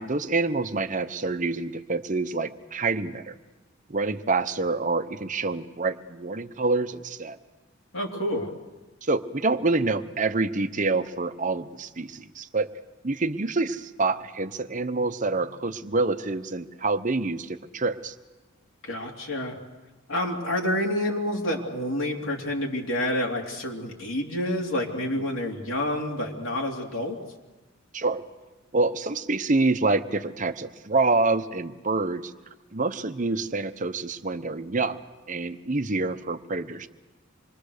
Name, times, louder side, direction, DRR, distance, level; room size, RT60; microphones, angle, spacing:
voice 1, 0.0-3.4 3.9-7.4 9.0-12.7 13.0-18.1 25.1-25.2 27.9-28.2 28.7-32.3 32.7-35.0 35.3-36.9, right 3 dB, 40° right, 10 dB, 0.9 m, -27 dB
voice 2, 7.9-8.5 18.8-19.6 20.1-27.2, left 1 dB, 85° left, -1 dB, 3.2 m, -28 dB
26.5 x 23.0 x 6.7 m, 1.2 s
head